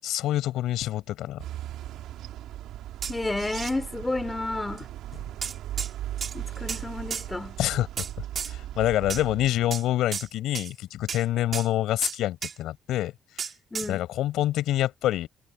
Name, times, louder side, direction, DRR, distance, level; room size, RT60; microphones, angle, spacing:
voice 1, 0.0-1.4 7.6-8.1 8.4-13.1 13.9-15.3, left 13 dB, 85° left, 6.7 m, -26 dB
sound 1, 1.4-9.5, right 12 dB, 90° right, 2.5 m, -38 dB
sound 2, 3.0-3.7 4.8-4.9 5.4-5.9 6.2-6.8 7.1-7.3 8.0-8.5 9.1-9.2 9.7-9.8 10.1-10.3 10.5-10.7 11.1-11.2 11.5-11.7 12.0-12.6 13.4-13.9, right 6 dB, 50° right, 4.9 m, -33 dB
voice 2, 3.1-4.9 6.3-7.6 13.7-14.0, left 2 dB, 15° left, 3.6 m, -31 dB
cardioid pair, 90°, 0 cm